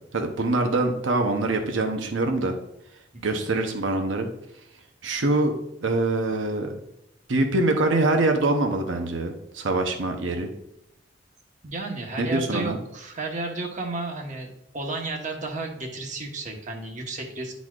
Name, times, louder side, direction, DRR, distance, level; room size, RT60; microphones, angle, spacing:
voice 1, 0.1-2.5 3.2-4.3 5.0-5.5 5.8-6.8 7.3-10.5 12.2-12.8, right 2 dB, 80° right, 4 dB, 0.8 m, -24 dB
voice 2, 11.6-17.6, right 2 dB, 40° right, 2 dB, 1.1 m, -33 dB
10.5 x 4.1 x 2.4 m, 0.84 s
head